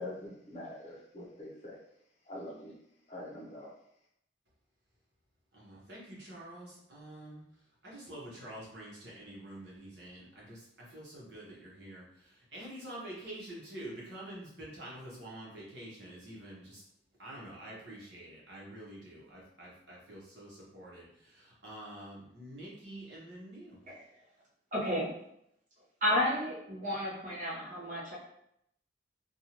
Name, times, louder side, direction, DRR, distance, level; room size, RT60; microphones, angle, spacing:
voice 1, 0.0-1.8 2.3-2.7 3.1-3.7, left 1 dB, 35° left, -4 dB, 0.7 m, -44 dB
voice 2, 5.5-7.4 7.8-16.8 17.2-23.8, right 1 dB, 65° right, -5 dB, 1.0 m, -47 dB
voice 3, 24.7-25.1 26.0-28.2, left 1 dB, 40° right, -7 dB, 1.0 m, -32 dB
2.6 x 2.3 x 3.0 m, 0.76 s
head